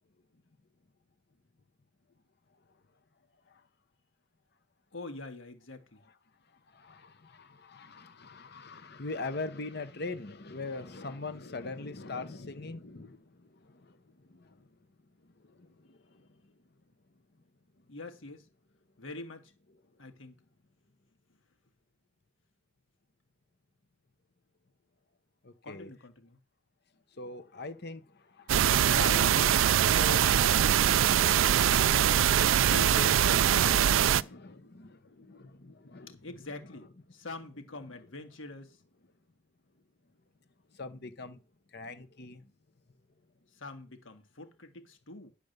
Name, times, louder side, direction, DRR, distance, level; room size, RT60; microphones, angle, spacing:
voice 1, 4.9-6.0 17.9-18.5 19.0-19.5 20.0-20.4 25.6-26.4 36.2-38.8 43.5-45.3, left 2 dB, 80° left, 1.8 m, -45 dB
voice 2, 6.7-14.7 15.2-16.4 25.4-25.9 27.2-28.5 28.8-36.2 40.7-41.4 41.7-42.5, left 3 dB, 55° left, 1.1 m, -42 dB
sound 1, 28.5-34.2, right 10 dB, 80° right, 0.4 m, -23 dB
10.5 x 5.1 x 6.7 m
head